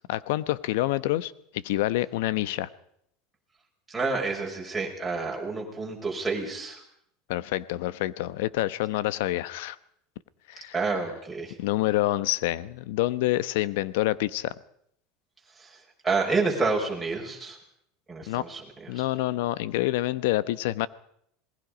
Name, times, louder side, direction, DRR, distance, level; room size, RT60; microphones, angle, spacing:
voice 1, 0.1-2.7 7.3-9.8 10.5-11.0 11.6-14.5 18.3-18.5 18.9-20.9, left 16 dB, 75° left, 17 dB, 0.9 m, -27 dB
voice 2, 3.9-6.8 10.7-11.5 15.6-15.7 16.0-17.6 18.1-18.9, right 3 dB, 10° right, -2 dB, 5.6 m, -29 dB
27.0 x 20.0 x 5.2 m, 0.71 s
supercardioid pair, 130°, 0 cm